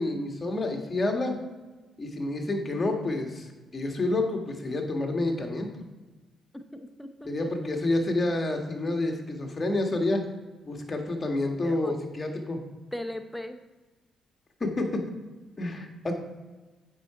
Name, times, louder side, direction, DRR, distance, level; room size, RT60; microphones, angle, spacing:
voice 1, 0.0-1.3 2.0-3.5 3.7-5.7 7.2-10.3 10.6-12.6 14.6-15.0 15.6-16.1, left 2 dB, 30° left, 3 dB, 1.6 m, -28 dB
voice 2, 6.5-7.3 11.6-11.9 12.9-13.6, left 1 dB, 5° left, 7 dB, 0.8 m, -38 dB
8.1 x 5.7 x 4.8 m, 1.2 s
cardioid pair, 90°, 0 cm